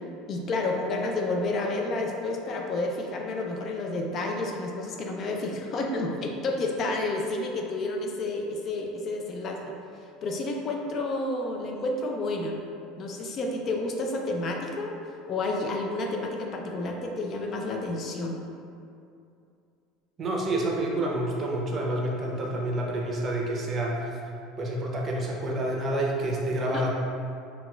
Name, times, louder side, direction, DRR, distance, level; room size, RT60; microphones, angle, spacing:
voice 1, 0.3-9.7 10.2-12.6 13.0-14.9 15.3-18.4 26.7-26.8, left 2 dB, 45° left, 1 dB, 0.4 m, -30 dB
voice 2, 20.2-24.2 24.6-26.9, right 1 dB, 35° right, -2 dB, 0.6 m, -28 dB
4.0 x 2.3 x 2.3 m, 2.5 s
supercardioid pair, 105°, 0 cm